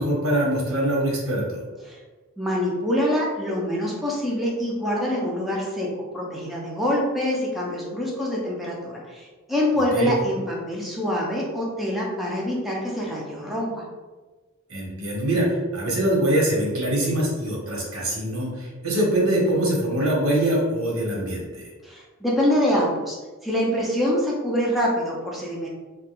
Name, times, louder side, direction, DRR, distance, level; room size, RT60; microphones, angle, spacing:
voice 1, 0.0-1.6 9.9-10.1 14.7-15.5 15.7-21.7, right 1 dB, 85° right, -3 dB, 0.9 m, -23 dB
voice 2, 2.4-5.9 6.1-13.8 18.9-19.3 21.8-23.2 23.4-25.7, equal, ahead, -5 dB, 0.3 m, -25 dB
2.2 x 2.0 x 2.9 m, 1.3 s
head